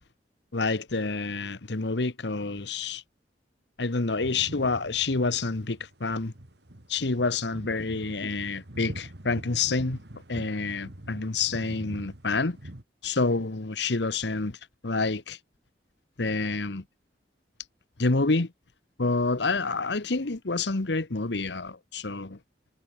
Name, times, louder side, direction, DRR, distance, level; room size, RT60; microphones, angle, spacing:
voice 1, 0.5-3.0 3.8-6.3 6.9-10.0 10.3-12.6 13.0-14.6 14.8-15.4 16.2-16.8 18.0-18.5 19.0-22.4, left 3 dB, 70° left, 1.2 m, -28 dB
sound 1, 4.0-12.8, right 1 dB, 65° right, 2.4 m, -44 dB
head